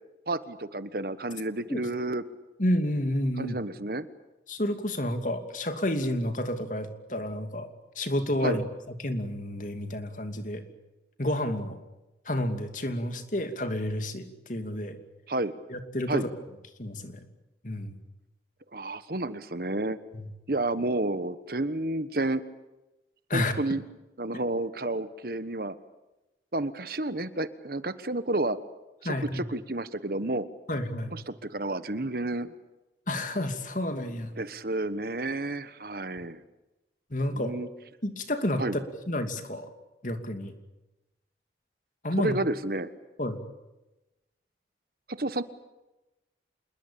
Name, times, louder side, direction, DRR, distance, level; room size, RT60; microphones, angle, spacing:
voice 1, 0.3-2.2 3.4-4.1 8.4-8.6 15.3-15.6 16.1-16.2 18.7-20.0 20.5-22.4 23.3-23.8 24.2-25.7 26.5-28.6 29.0-30.4 31.1-32.5 34.3-36.4 37.3-37.7 38.6-38.8 42.2-42.9 45.2-45.4, right 2 dB, 55° right, 13 dB, 1.3 m, -30 dB
voice 2, 2.6-3.6 4.5-7.7 7.9-8.6 9.0-10.6 11.2-11.8 12.2-15.0 15.7-16.3 16.8-17.2 17.6-18.0 20.1-20.3 23.3-23.5 29.0-29.4 30.7-31.1 33.1-34.3 37.1-37.5 38.0-38.6 39.1-39.7 40.0-40.5 42.0-42.3 43.2-43.4, left 1 dB, 45° left, 7 dB, 2.7 m, -30 dB
27.5 x 21.5 x 8.7 m, 1.0 s
head